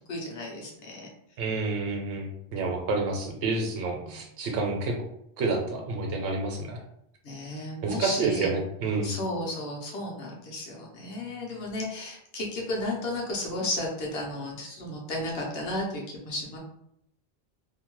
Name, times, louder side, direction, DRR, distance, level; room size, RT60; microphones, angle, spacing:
voice 1, 0.1-1.1 4.0-4.2 7.2-8.5 9.0-16.6, left 1 dB, 75° left, -2 dB, 1.0 m, -33 dB
voice 2, 1.4-5.0 5.4-6.8 7.8-9.1, right 3 dB, 75° right, 1 dB, 0.8 m, -29 dB
2.7 x 2.1 x 2.9 m, 0.75 s
omnidirectional pair, 1.0 m